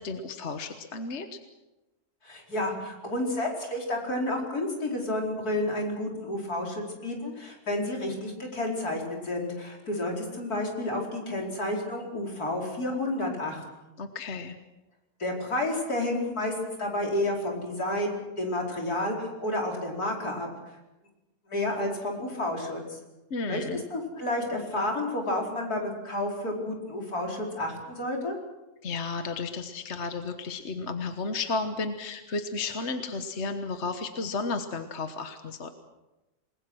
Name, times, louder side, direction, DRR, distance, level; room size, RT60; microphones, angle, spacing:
voice 1, 0.0-1.4 14.0-14.6 23.3-23.8 28.8-35.7, left 4 dB, 50° left, 7 dB, 1.5 m, -33 dB
voice 2, 2.2-13.6 15.2-16.5 16.8-20.5 21.5-23.0 23.5-23.6 23.9-28.4, left 1 dB, 75° left, 0 dB, 5.3 m, -30 dB
28.0 x 20.5 x 6.3 m, 1.0 s
omnidirectional pair, 1.6 m